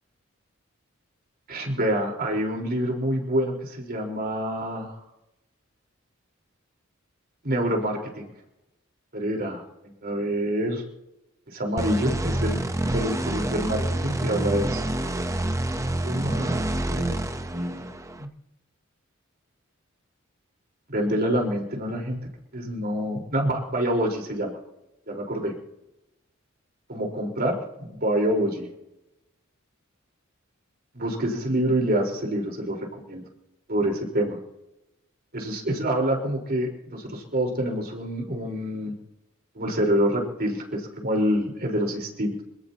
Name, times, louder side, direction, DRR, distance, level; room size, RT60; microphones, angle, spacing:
voice 1, 1.5-5.0 7.4-8.3 9.1-9.6 10.0-10.8 11.5-14.8 16.0-17.2 17.5-17.9 18.2-18.3 20.9-22.2 22.5-24.6 25.1-25.6 26.9-28.7 30.9-33.2 33.7-34.4 35.3-38.9 39.5-42.4, right 1 dB, 50° right, 0 dB, 4.4 m, -27 dB
sound 1, 11.8-18.2, right 1 dB, 15° right, 0.9 m, -28 dB
26.5 x 18.0 x 2.9 m, 0.91 s
head